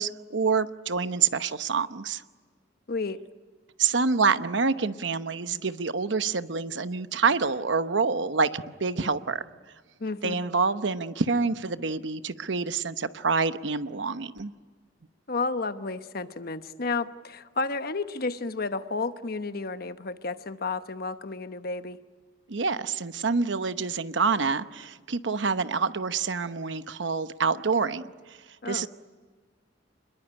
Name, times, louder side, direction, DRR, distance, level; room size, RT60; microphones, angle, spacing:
voice 1, 0.0-2.2 3.8-9.4 10.2-14.5 22.5-28.4 28.7-28.9, right 4 dB, 75° right, 11 dB, 0.9 m, -27 dB
voice 2, 2.9-3.2 10.0-10.4 15.3-22.0 28.6-28.9, left 3 dB, 55° left, 10 dB, 1.0 m, -32 dB
27.5 x 21.5 x 10.0 m, 1.5 s
head